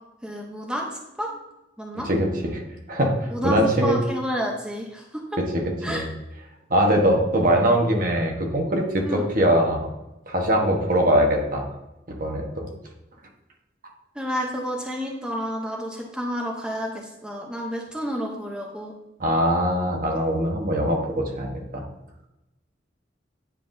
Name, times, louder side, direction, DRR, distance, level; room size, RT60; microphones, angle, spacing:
voice 1, 0.2-1.4 1.8-2.1 3.3-5.2 5.8-6.0 9.0-9.2 14.1-18.9, equal, 5° right, -1 dB, 0.7 m, -30 dB
voice 2, 1.9-2.6 2.9-4.0 5.4-5.6 5.9-6.0 6.7-9.9 10.3-11.6 12.2-12.7 19.2-21.8, equal, 50° right, 1 dB, 1.2 m, -22 dB
9.5 x 5.7 x 2.6 m, 0.95 s
head